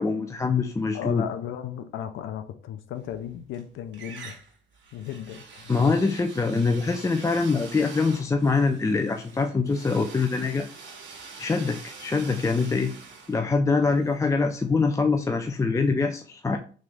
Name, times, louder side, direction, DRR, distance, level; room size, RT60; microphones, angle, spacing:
voice 1, 0.0-1.2 5.7-10.7 11.4-12.9 13.3-16.6, left 4 dB, 15° left, 0.4 m, -24 dB
voice 2, 0.9-4.4 4.9-5.8, left 10 dB, 80° left, 0.6 m, -35 dB
sound 1, 3.0-3.6 3.9-14.8, right 4 dB, 70° right, 1.3 m, -45 dB
3.6 x 3.3 x 3.4 m
cardioid pair, 90°, 20 cm